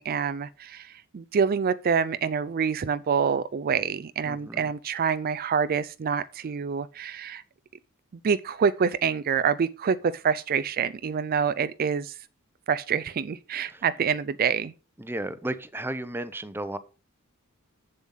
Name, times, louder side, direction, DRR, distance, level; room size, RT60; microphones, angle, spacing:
voice 1, 0.0-7.4 8.2-12.2 12.7-14.7, right 6 dB, 45° right, 0.4 m, -26 dB
voice 2, 4.2-4.7 13.7-13.8 15.0-16.8, right 1 dB, 10° right, 0.7 m, -34 dB
7.9 x 7.2 x 5.5 m
head